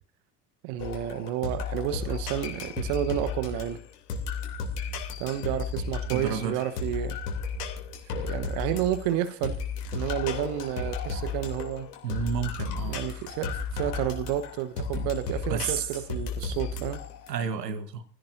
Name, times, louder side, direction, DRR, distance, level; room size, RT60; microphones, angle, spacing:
voice 1, 0.6-3.8 5.2-7.2 8.1-9.6 9.9-11.9 12.9-17.0, right 11 dB, 55° right, 1.2 m, -31 dB
sound 1, 0.8-17.3, left 4 dB, 65° left, 3.2 m, -34 dB
voice 2, 6.1-6.6 12.0-13.0 14.9-15.1 15.5-15.9 17.3-18.0, right 7 dB, 75° right, 1.4 m, -31 dB
28.5 x 16.5 x 2.7 m
figure-of-eight pair, 65°, 50 cm